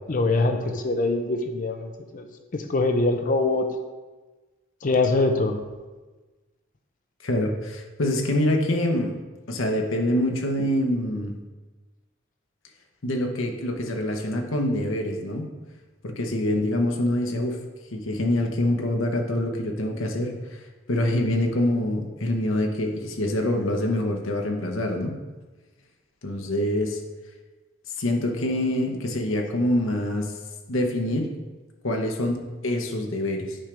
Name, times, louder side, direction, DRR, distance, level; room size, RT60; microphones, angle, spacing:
voice 1, 0.1-2.3 2.5-3.7 4.8-5.6, left 2 dB, 40° left, 6 dB, 0.5 m, -23 dB
voice 2, 7.2-9.1 9.5-11.3 13.0-15.5 16.0-17.6 17.9-20.3 20.9-25.2 26.2-27.0 28.0-30.3 30.7-31.3 31.8-33.6, left 1 dB, 75° left, 2 dB, 0.9 m, -25 dB
9.0 x 5.1 x 3.4 m, 1.2 s
head